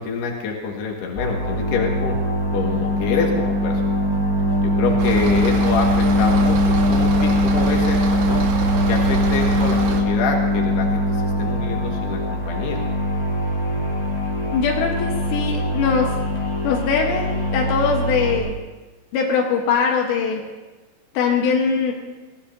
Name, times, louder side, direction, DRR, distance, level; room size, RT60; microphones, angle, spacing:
voice 1, 0.0-2.2 2.5-3.9 4.6-8.4 8.9-12.8, left 4 dB, 70° left, 0 dB, 3.8 m, -26 dB
sound 1, 1.1-18.4, left 1 dB, 25° left, 2.2 m, -25 dB
sound 2, 1.8-11.9, left 1 dB, 30° right, 3.1 m, -22 dB
sound 3, 5.0-10.0, right 4 dB, 75° right, 3.3 m, -26 dB
voice 2, 14.5-16.1 16.6-18.5 19.1-20.4 21.2-21.9, left 5 dB, 90° left, 0 dB, 3.6 m, -21 dB
21.5 x 16.5 x 2.8 m, 1.2 s
omnidirectional pair, 4.9 m